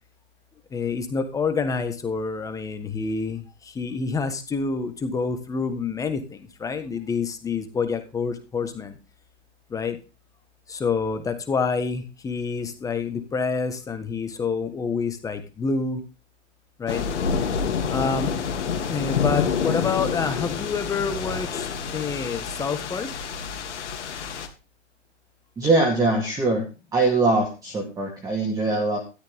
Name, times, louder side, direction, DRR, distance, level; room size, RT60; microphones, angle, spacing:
voice 1, 0.7-9.0 9.7-10.0 10.7-16.0 16.8-17.1 17.9-18.3 18.8-23.1, left 5 dB, 10° left, 9 dB, 1.4 m, -28 dB
sound 1, 16.9-24.5, left 6 dB, 75° left, 3.0 m, -28 dB
voice 2, 25.6-26.6 26.9-29.0, right 2 dB, 10° right, 0 dB, 2.4 m, -22 dB
13.5 x 12.5 x 3.7 m, 0.31 s
hypercardioid pair, 150°, 35 cm